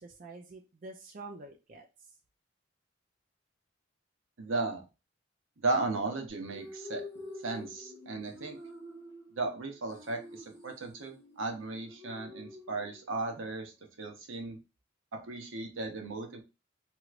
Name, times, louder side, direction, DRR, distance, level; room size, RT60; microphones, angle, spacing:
voice 1, 0.0-2.1, right 3 dB, 40° right, 2 dB, 0.4 m, -47 dB
voice 2, 4.4-4.8 5.6-7.0 7.4-8.6 9.3-14.6 15.1-16.4, right 3 dB, 80° right, 4 dB, 0.8 m, -35 dB
sound 1, 6.3-13.3, left 2 dB, 35° left, 1.6 m, -48 dB
3.0 x 3.0 x 2.4 m, 0.29 s
head